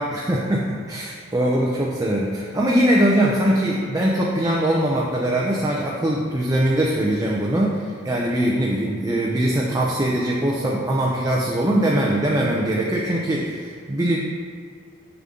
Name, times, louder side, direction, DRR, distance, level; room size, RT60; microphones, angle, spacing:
voice 1, 0.0-14.2, right 1 dB, 15° right, -3 dB, 0.6 m, -21 dB
7.3 x 7.1 x 3.8 m, 2.1 s
head